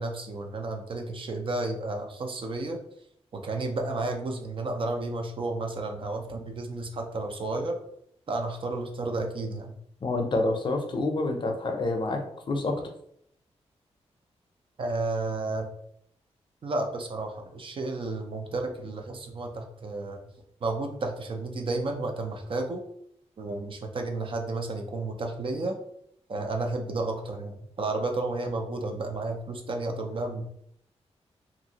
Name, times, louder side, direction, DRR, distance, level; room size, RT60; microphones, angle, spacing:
voice 1, 0.0-2.8 3.3-7.8 8.3-9.7 14.8-15.7 16.6-20.2 20.6-22.8 23.4-25.8 26.3-30.7, right 2 dB, 50° right, 3 dB, 0.5 m, -32 dB
voice 2, 10.0-12.2 12.5-12.8, left 2 dB, 45° left, 4 dB, 0.5 m, -27 dB
2.7 x 2.5 x 2.8 m, 0.70 s
wide cardioid pair, 120°, 11 cm